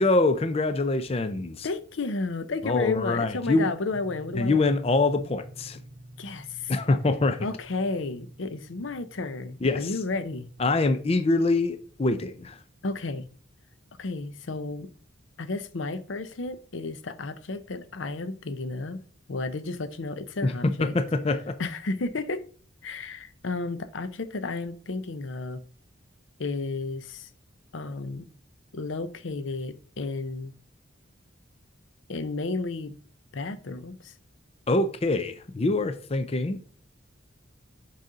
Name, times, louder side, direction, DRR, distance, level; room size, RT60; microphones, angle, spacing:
voice 1, 0.0-1.7 2.6-3.7 4.3-5.8 6.7-7.5 9.6-9.9 10.6-12.6 20.4-20.5 20.8-21.6 34.7-36.6, left 2 dB, 30° left, 0.5 m, -24 dB
voice 2, 1.6-4.7 6.2-6.7 7.4-10.5 12.8-13.3 14.0-14.9 15.4-19.0 19.3-21.0 21.6-22.5 22.8-25.6 26.4-27.3 27.7-28.3 28.7-30.5 32.1-33.0 33.3-34.1, left 3 dB, 75° left, 0.7 m, -32 dB
sound 1, 3.9-14.1, right 1 dB, 50° right, 1.5 m, -49 dB
6.5 x 4.1 x 4.9 m
head